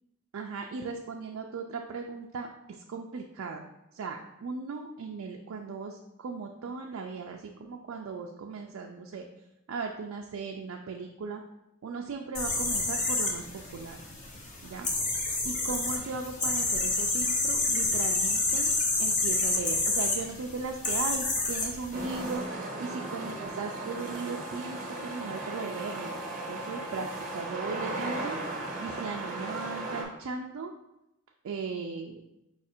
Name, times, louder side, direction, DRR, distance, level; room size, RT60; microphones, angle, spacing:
voice 1, 0.3-3.6 3.9-9.3 9.7-11.4 11.8-14.0 14.6-14.9 15.4-18.7 19.0-26.1 26.5-28.4 28.8-30.7 31.4-32.2, right 4 dB, 75° right, 2 dB, 0.4 m, -37 dB
sound 1, 12.3-22.3, left 2 dB, 40° left, 0.8 m, -29 dB
sound 2, 21.9-30.0, right 2 dB, 40° right, 0.8 m, -36 dB
4.8 x 2.4 x 4.3 m, 0.89 s
head